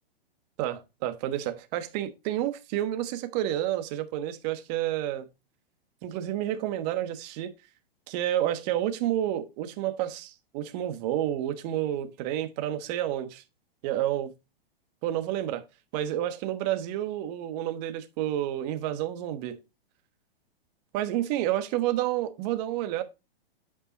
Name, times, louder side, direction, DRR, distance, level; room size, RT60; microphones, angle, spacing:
voice 1, 0.6-5.2 6.0-7.5 8.1-13.4 13.8-14.3 15.0-15.6 15.9-19.6 20.9-23.0, right 12 dB, 45° right, 1.3 m, -30 dB
8.5 x 5.4 x 4.1 m
hypercardioid pair, 125°, 30 cm